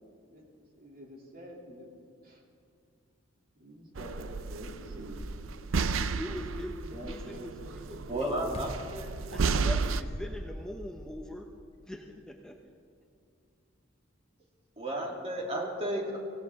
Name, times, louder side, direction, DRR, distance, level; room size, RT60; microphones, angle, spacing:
voice 1, 0.3-1.9 2.2-2.4 3.6-5.2 6.9-7.7, equal, 50° right, -1 dB, 2.7 m, -47 dB
sound 1, 3.9-4.0 4.4-5.9 8.4-8.9 9.7-10.9, left 1 dB, 35° left, 1.1 m, -44 dB
sound 2, 3.9-10.0, right 4 dB, 80° right, 0.6 m, -33 dB
voice 2, 5.9-8.5 9.2-11.5 11.9-12.6, left 1 dB, 5° left, 2 dB, 0.7 m, -42 dB
voice 3, 8.1-9.1 14.8-16.2, right 1 dB, 30° right, -2 dB, 2.7 m, -33 dB
24.5 x 16.0 x 3.5 m, 2.4 s
head